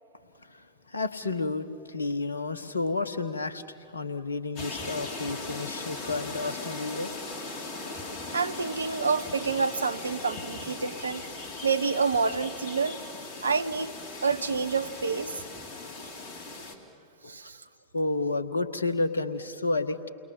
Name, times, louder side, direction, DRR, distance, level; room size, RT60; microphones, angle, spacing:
voice 1, 0.4-7.1 17.2-17.4 17.9-20.1, left 3 dB, 75° left, 13 dB, 1.2 m, -31 dB
sound 1, 4.6-16.8, left 3 dB, 40° left, 3.6 m, -39 dB
voice 2, 8.3-11.2 11.6-13.0 13.4-13.9 14.2-15.4 17.3-17.6, right 5 dB, 75° right, 12 dB, 0.7 m, -28 dB
30.0 x 22.0 x 7.4 m, 2.6 s
figure-of-eight pair, 90°, 0 cm